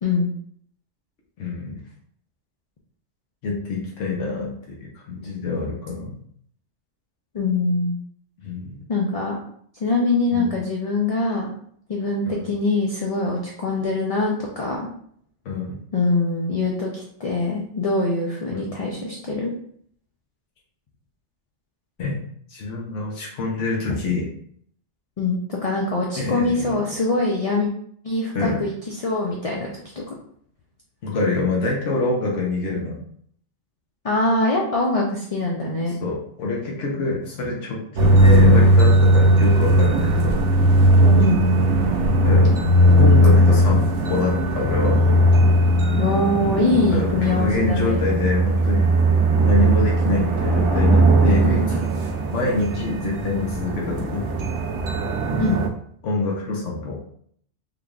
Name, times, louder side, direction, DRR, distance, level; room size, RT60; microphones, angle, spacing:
voice 1, 1.4-1.8 3.4-4.8 5.1-6.2 8.4-8.8 10.3-10.5 12.2-12.5 15.4-15.8 18.5-18.8 22.0-22.2 22.5-24.3 26.2-26.8 28.3-28.6 31.0-33.0 36.0-40.4 42.2-42.5 42.9-45.0 46.9-48.9 49.5-51.9 52.3-54.3 56.0-57.0, left 3 dB, 85° left, -3 dB, 1.2 m, -26 dB
voice 2, 7.3-8.0 8.9-9.4 9.8-11.5 11.9-14.9 15.9-19.5 25.2-27.7 28.0-29.7 30.0-30.2 34.0-35.9 41.2-41.4 46.0-48.0 55.4-55.6, left 2 dB, 50° left, -1 dB, 0.4 m, -23 dB
sound 1, 38.0-55.7, right 1 dB, 75° right, 0.9 m, -17 dB
3.8 x 3.3 x 2.3 m, 0.63 s
omnidirectional pair, 1.2 m